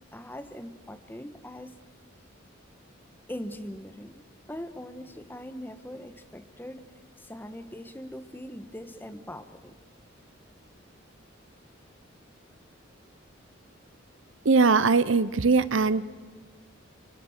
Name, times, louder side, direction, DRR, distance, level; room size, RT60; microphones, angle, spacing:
voice 1, 0.1-1.7 3.3-9.8, equal, 10° left, 10 dB, 1.3 m, -41 dB
voice 2, 14.4-16.0, right 4 dB, 70° right, 16 dB, 0.9 m, -21 dB
29.0 x 26.5 x 7.4 m, 1.4 s
head